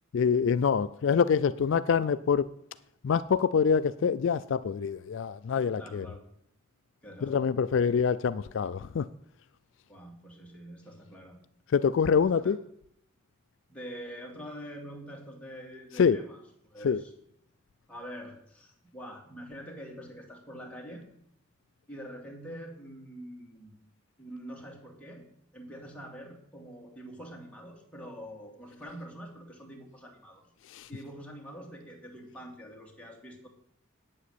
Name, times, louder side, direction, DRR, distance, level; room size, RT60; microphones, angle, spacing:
voice 1, 0.1-2.5 3.0-6.1 7.2-9.1 11.7-12.6 16.0-16.2 16.8-17.0 30.7-30.9, left 6 dB, 60° left, 0.3 m, -25 dB
voice 2, 5.8-6.3 7.0-7.5 7.8-7.9 9.9-11.4 12.2-12.5 13.7-17.1 17.9-21.1 21.9-23.7 24.2-25.2 25.5-30.5 30.9-33.5, equal, 5° left, 2.4 m, -45 dB
9.3 x 7.7 x 8.4 m
head